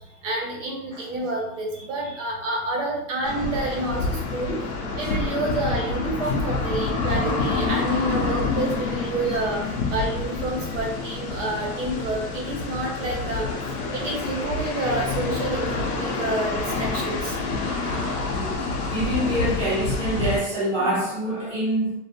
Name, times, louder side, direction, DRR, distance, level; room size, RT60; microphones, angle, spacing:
voice 1, 0.2-9.6 9.9-13.5 13.9-17.4, right 2 dB, 50° right, 0 dB, 0.6 m, -29 dB
sound 1, 3.2-20.4, left 4 dB, 65° left, 0.7 m, -27 dB
voice 2, 17.6-21.9, right 1 dB, 10° left, -10 dB, 0.7 m, -27 dB
2.6 x 2.0 x 2.7 m, 0.81 s
supercardioid pair, 170°, 48 cm